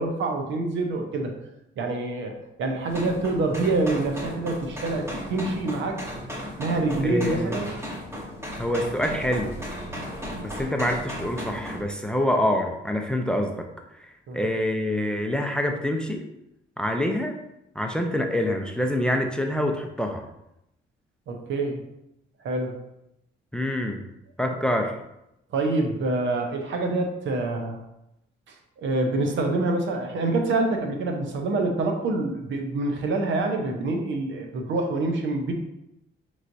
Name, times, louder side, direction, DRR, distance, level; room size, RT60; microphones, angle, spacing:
voice 1, 0.0-1.3 1.8-2.3 2.6-6.0 6.6-7.7 14.3-14.4 21.3-21.8 22.4-22.8 24.4-24.5 25.5-27.8 28.8-35.5, right 2 dB, 70° right, 3 dB, 0.8 m, -26 dB
sound 1, 2.9-11.8, equal, 15° right, 1.2 m, -35 dB
voice 2, 7.0-7.6 8.6-9.6 10.4-13.7 14.0-16.2 16.8-17.4 17.8-20.2 23.5-24.0 24.4-24.9, left 1 dB, 5° left, 3 dB, 0.5 m, -26 dB
5.5 x 3.1 x 2.6 m, 0.86 s
cardioid pair, 90°, 20 cm